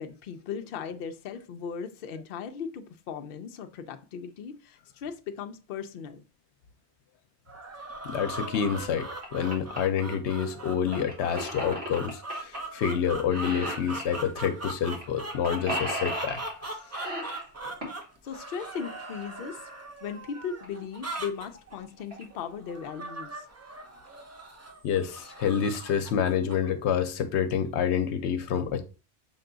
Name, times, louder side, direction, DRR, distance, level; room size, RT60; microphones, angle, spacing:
voice 1, 0.0-6.2 17.6-17.8 18.2-19.6 20.0-23.4, left 7 dB, 65° left, 0.7 m, -37 dB
sound 1, 7.5-26.7, right 2 dB, 20° right, 0.4 m, -40 dB
voice 2, 8.0-16.4 16.6-16.8 24.8-28.8, left 8 dB, 90° left, 0.9 m, -28 dB
sound 2, 8.5-8.6 9.0-9.8 10.9-12.6 12.9-13.0 13.3-14.2 14.9-15.0 15.3-16.6 16.9-18.0 19.7-19.8 20.4-20.5 20.6-20.7 21.1-21.4 21.9-22.2, equal, 70° right, 1.7 m, -35 dB
5.9 x 2.3 x 3.8 m
omnidirectional pair, 1.1 m